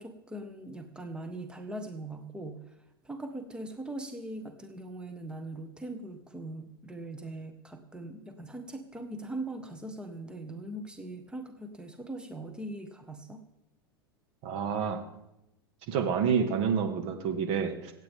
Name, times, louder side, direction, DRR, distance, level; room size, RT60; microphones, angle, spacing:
voice 1, 0.0-2.8 3.0-13.4, right 1 dB, 5° right, 6 dB, 1.4 m, -41 dB
voice 2, 14.4-15.0 15.9-17.9, right 6 dB, 50° right, 6 dB, 2.0 m, -28 dB
25.5 x 8.9 x 3.7 m, 0.89 s
hypercardioid pair, 90°, 13 cm